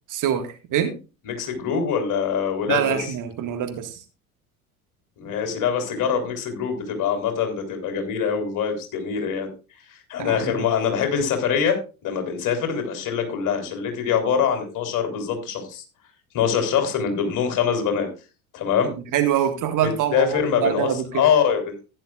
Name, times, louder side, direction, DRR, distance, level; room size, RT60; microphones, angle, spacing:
voice 1, 0.1-1.0 2.7-4.0 10.2-10.7 19.1-21.2, right 9 dB, 45° right, 6 dB, 1.8 m, -25 dB
voice 2, 1.2-3.1 5.2-9.5 9.9-15.8 16.3-18.1 18.5-18.9 19.8-21.8, left 7 dB, 45° left, 5 dB, 3.8 m, -24 dB
15.0 x 10.0 x 2.4 m, 0.31 s
figure-of-eight pair, 65°, 44 cm